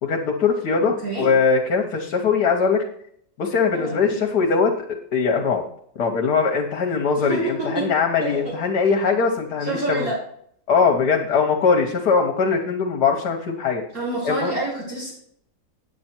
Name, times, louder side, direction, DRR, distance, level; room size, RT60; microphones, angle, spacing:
voice 1, 0.0-2.8 3.4-5.6 6.0-10.1 10.7-13.8 14.2-14.5, left 5 dB, 70° left, 2 dB, 1.5 m, -21 dB
voice 2, 0.8-1.2 3.7-4.2 7.1-7.9 8.2-8.5 9.7-10.2 13.9-15.1, right 2 dB, 55° right, -5 dB, 2.9 m, -28 dB
9.0 x 8.7 x 4.4 m, 0.67 s
omnidirectional pair, 1.8 m